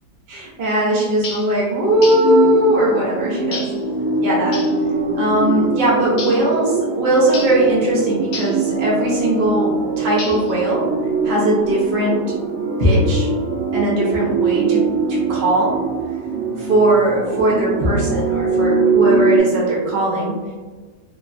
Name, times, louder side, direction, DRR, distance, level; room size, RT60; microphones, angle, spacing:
voice 1, 0.3-3.7 4.2-4.6 5.2-10.9 11.2-12.2 12.8-13.3 13.7-14.8 15.1-15.8 16.6-20.4, right 1 dB, 50° right, -5 dB, 0.5 m, -19 dB
sound 1, 1.2-1.5 2.0-2.3 3.5-3.8 4.5-4.8 6.2-6.5 7.3-7.6 8.3-8.6 10.2-10.6, left 4 dB, 65° left, 0.9 m, -31 dB
sound 2, 1.9-19.4, right 4 dB, 70° right, 0.9 m, -22 dB
3.2 x 2.1 x 2.5 m, 1.4 s
omnidirectional pair, 1.8 m